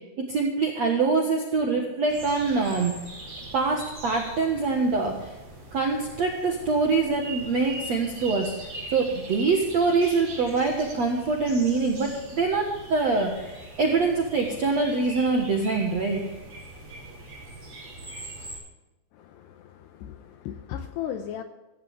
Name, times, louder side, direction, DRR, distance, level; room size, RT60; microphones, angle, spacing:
voice 1, 0.3-2.9 3.5-5.3 5.7-8.5 8.9-16.2, right 4 dB, 65° right, 1 dB, 1.6 m, -24 dB
sound 1, 2.1-18.6, right 2 dB, 35° right, 5.7 m, -41 dB
voice 2, 19.2-21.4, left 10 dB, 80° left, 8 dB, 2.5 m, -36 dB
15.5 x 15.5 x 3.6 m, 1.0 s
omnidirectional pair, 5.6 m